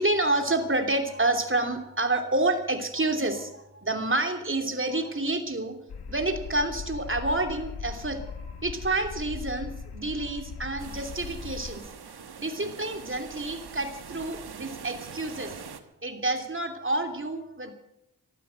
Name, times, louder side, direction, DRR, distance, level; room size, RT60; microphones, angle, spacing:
voice 1, 0.0-11.9 12.4-15.6 16.0-17.7, right 2 dB, 30° right, 5 dB, 3.0 m, -29 dB
sound 1, 5.9-11.7, left 5 dB, 90° left, 1.6 m, -39 dB
sound 2, 10.8-15.8, right 6 dB, 75° right, 1.4 m, -43 dB
14.5 x 12.5 x 7.8 m, 0.84 s
cardioid pair, 45°, 38 cm